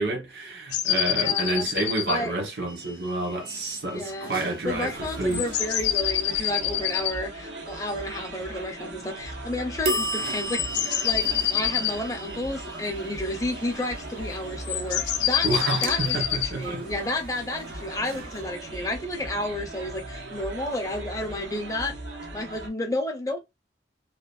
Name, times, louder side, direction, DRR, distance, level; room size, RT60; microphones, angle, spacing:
voice 1, 0.0-4.9 5.2-5.5 15.4-16.8, right 2 dB, 70° right, 1.1 m, -29 dB
sound 1, 0.7-2.2 2.6-2.7 4.2-4.3 5.3-7.2 10.4-12.0 13.2-14.2 14.6-16.6, left 12 dB, 70° left, 0.3 m, -27 dB
voice 2, 1.2-1.7 2.1-2.3 3.9-4.3 4.6-22.0 22.3-23.4, left 1 dB, 20° left, 0.7 m, -31 dB
sound 2, 2.7-6.4 9.8-20.5, right 2 dB, 50° right, 0.5 m, -37 dB
sound 3, 4.6-22.7, right 2 dB, 90° right, 0.8 m, -39 dB
2.9 x 2.2 x 2.3 m
head